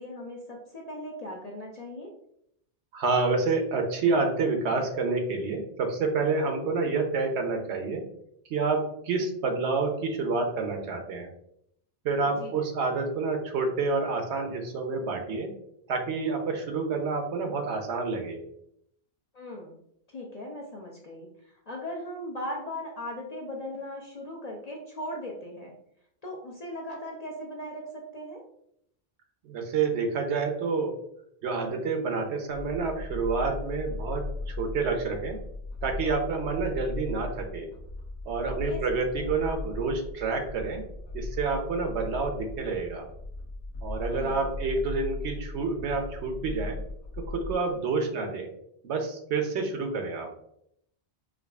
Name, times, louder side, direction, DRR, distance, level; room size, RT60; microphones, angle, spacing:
voice 1, 0.0-2.1 12.2-12.7 19.3-19.8 20.1-21.3 21.7-25.7 26.2-28.4 38.6-39.3 44.1-44.5, left 1 dB, 50° left, -1 dB, 0.5 m, -38 dB
voice 2, 2.9-8.0 8.5-11.3 12.0-15.5 15.9-18.4 29.4-31.0 31.4-35.4 35.8-37.7 38.3-40.8 41.1-43.1 43.8-46.8 47.2-48.5 48.8-50.3, right 4 dB, 80° right, 4 dB, 1.0 m, -28 dB
Modulaat Sector (Hollow Restructure), 32.5-47.6, left 2 dB, 90° left, 1.0 m, -37 dB
4.7 x 2.3 x 2.3 m, 0.73 s
omnidirectional pair, 1.1 m